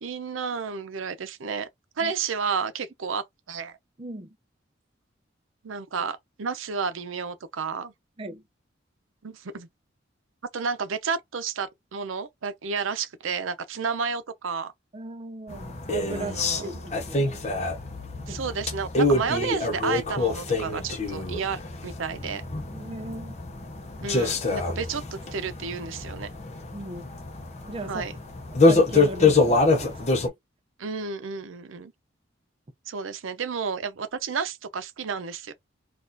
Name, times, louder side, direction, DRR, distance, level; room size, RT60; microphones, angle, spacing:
voice 1, 0.0-1.7 2.0-3.7 5.6-7.9 9.2-9.7 10.5-14.7 16.2-16.7 18.3-22.4 24.0-26.3 27.9-28.1 30.8-31.9 32.9-35.5, right 5 dB, 90° right, 0.6 m, -31 dB
voice 2, 4.0-4.4 8.2-8.4 14.9-17.4 18.2-18.4 22.7-23.3 26.7-27.1 27.7-28.0 28.7-30.4, right 2 dB, 30° right, 0.5 m, -37 dB
sound 1, 15.5-30.3, left 3 dB, 35° left, 0.6 m, -26 dB
4.1 x 2.4 x 2.6 m
head